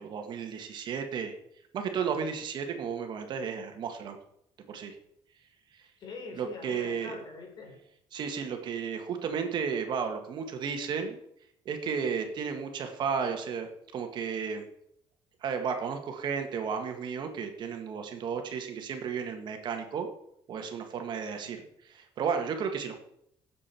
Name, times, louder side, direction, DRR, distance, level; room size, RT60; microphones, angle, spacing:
voice 1, 0.0-1.3 1.7-4.2 4.7-4.9 6.4-7.1 8.1-11.2 11.6-14.7 15.4-20.1 20.5-23.0, right 6 dB, 55° right, 5 dB, 1.8 m, -33 dB
voice 2, 6.0-7.8 21.4-21.6, left 4 dB, 50° left, 3 dB, 3.9 m, -44 dB
17.5 x 7.5 x 4.5 m, 0.75 s
cardioid pair, 120°, 9 cm